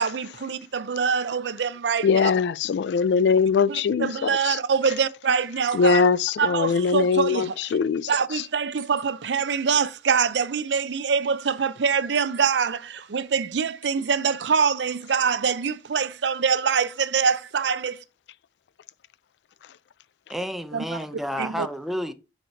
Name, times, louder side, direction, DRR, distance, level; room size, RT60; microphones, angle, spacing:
voice 1, 0.0-2.3 3.7-6.1 6.4-7.6 8.1-17.9 20.7-20.8 21.4-21.7, right 6 dB, 85° right, 0.5 m, -24 dB
voice 2, 2.0-4.6 5.7-8.1 8.3-8.4, left 5 dB, 70° left, 0.3 m, -22 dB
sound 1, 5.7-5.9 8.8-9.0 10.3-10.4 12.1-12.4 13.8-14.1 15.4-15.7, right 8 dB, 50° right, 1.2 m, -45 dB
voice 3, 20.3-22.1, equal, ahead, 0.6 m, -30 dB
6.4 x 4.2 x 4.5 m
head